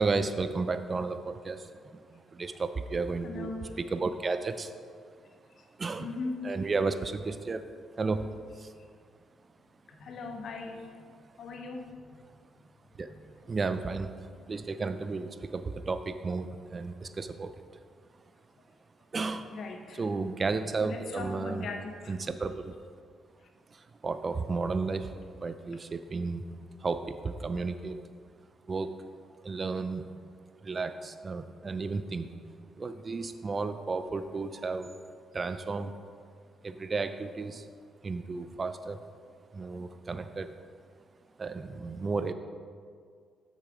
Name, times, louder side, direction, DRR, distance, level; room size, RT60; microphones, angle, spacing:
voice 1, 0.0-4.7 5.8-6.1 6.4-7.7 7.9-8.7 11.1-11.2 13.0-13.1 13.4-17.5 19.1-19.6 19.9-21.7 22.1-22.8 23.7-26.4 26.8-28.0 28.7-29.0 29.4-30.1 30.6-32.4 32.7-35.0 35.3-35.9 36.6-37.7 38.0-39.0 39.5-40.5 41.4-42.3, right 4 dB, 40° right, 0.4 m, -33 dB
voice 2, 3.2-3.7 6.0-6.5 9.9-10.8 11.4-11.9 19.5-20.0 20.8-22.1, left 3 dB, 65° left, 0.9 m, -39 dB
6.5 x 6.5 x 4.8 m
supercardioid pair, 65°, 0 cm